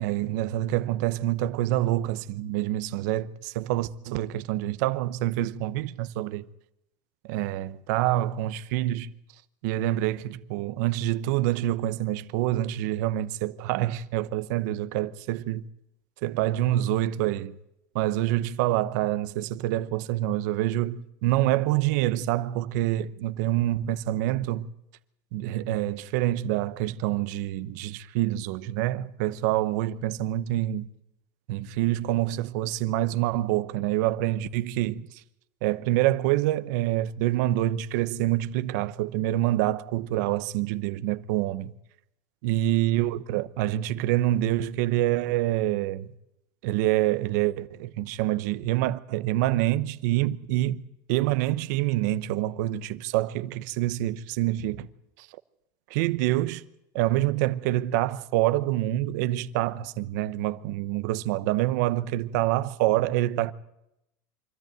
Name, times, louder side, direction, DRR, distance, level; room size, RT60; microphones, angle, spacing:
voice 1, 0.0-6.5 7.3-9.1 9.6-15.6 16.2-17.6 17.9-24.7 25.3-30.9 31.5-35.2 35.6-41.7 42.4-46.1 46.6-50.8 51.1-54.9 55.2-55.3 55.9-56.6 56.9-63.5, right 14 dB, 75° right, 0.9 m, -26 dB
24.5 x 14.0 x 9.1 m
supercardioid pair, 145°, 10 cm